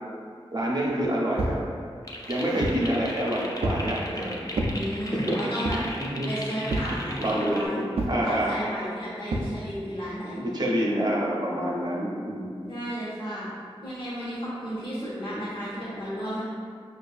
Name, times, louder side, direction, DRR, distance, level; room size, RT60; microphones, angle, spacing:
voice 1, 0.5-1.6 2.3-4.4 5.1-5.4 6.0-6.3 6.6-8.5 10.3-12.7, equal, 40° right, -4 dB, 0.7 m, -27 dB
sound 1, 1.4-1.6 2.2-2.9 3.6-3.9 4.5-4.8 5.6-6.0 6.7-7.0 8.0-8.2 9.3-9.5, right 1 dB, 70° right, 0.4 m, -29 dB
sound 2, 2.0-7.7, left 1 dB, 35° left, 0.4 m, -37 dB
voice 2, 4.6-7.8 8.2-10.4 12.6-13.5 13.8-16.4, equal, 50° left, -11 dB, 1.1 m, -33 dB
5.1 x 2.5 x 2.3 m, 2.2 s
wide cardioid pair, 80°, 10 cm